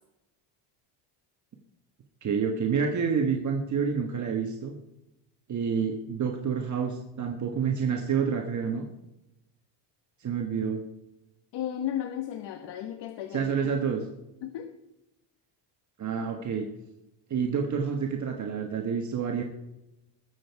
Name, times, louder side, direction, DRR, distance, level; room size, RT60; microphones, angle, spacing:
voice 1, 2.2-4.7 5.5-8.9 10.2-10.8 13.3-14.1 16.0-16.7 17.3-19.4, right 6 dB, 35° right, 3 dB, 1.6 m, -28 dB
voice 2, 11.5-13.5 14.4-14.7, left 10 dB, 60° left, 7 dB, 1.3 m, -34 dB
20.5 x 7.8 x 4.8 m, 0.91 s
cardioid pair, 125°, 48 cm